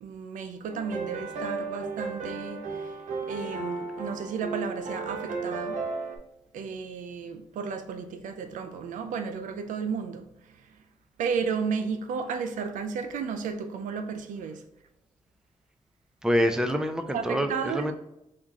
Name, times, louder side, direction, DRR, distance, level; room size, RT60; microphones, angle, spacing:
voice 1, 0.0-3.0 3.3-5.8 6.5-10.7 11.2-14.6 17.1-17.9, right 6 dB, 90° right, 0.4 m, -33 dB
sound 1, 0.7-6.2, right 3 dB, 70° right, 0.7 m, -34 dB
voice 2, 16.2-17.9, equal, 5° right, 0.5 m, -26 dB
3.6 x 2.4 x 4.0 m
cardioid pair, 60°, 13 cm